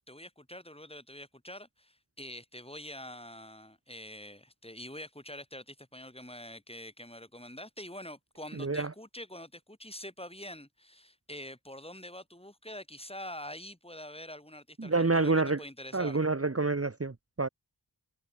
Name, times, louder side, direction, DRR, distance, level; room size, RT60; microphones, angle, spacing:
voice 1, 0.0-16.2, left 1 dB, 15° left, 5.8 m, -45 dB
voice 2, 8.6-8.9 14.8-15.6 15.9-17.5, right 3 dB, 35° right, 1.3 m, -28 dB
wide cardioid pair, 60°, 43 cm